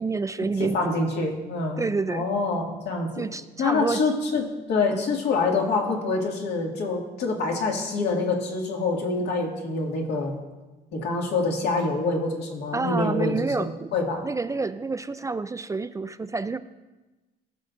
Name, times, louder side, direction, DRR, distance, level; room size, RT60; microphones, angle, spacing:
voice 1, 0.0-1.0 1.8-2.3 3.2-4.0 12.7-13.9 14.2-16.6, right 4 dB, 20° right, 12 dB, 0.3 m, -28 dB
voice 2, 0.6-1.8 2.1-3.3 3.6-10.3 10.9-14.2, left 3 dB, 75° left, 0 dB, 2.1 m, -26 dB
18.0 x 6.6 x 2.6 m, 1.2 s
cardioid pair, 95°, 18 cm